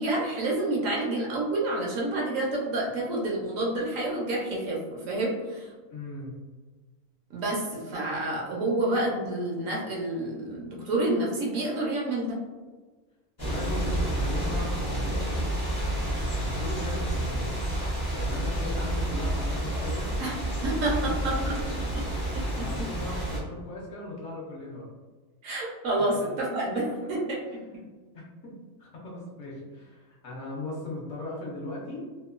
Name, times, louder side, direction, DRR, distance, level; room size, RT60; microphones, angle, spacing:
voice 1, 0.0-5.7 7.3-12.4 20.2-21.5 22.8-22.9 25.4-27.4, right 2 dB, 70° right, -3 dB, 0.9 m, -29 dB
voice 2, 5.9-6.4 13.4-15.3 16.2-17.6 18.1-20.1 21.0-24.9 26.0-26.2 26.9-27.1 28.1-28.5 28.8-32.0, left 2 dB, 65° left, -4 dB, 0.9 m, -38 dB
sound 1, 13.4-23.4, right 1 dB, 25° left, 0.5 m, -29 dB
2.9 x 2.1 x 2.3 m, 1.3 s
omnidirectional pair, 1.6 m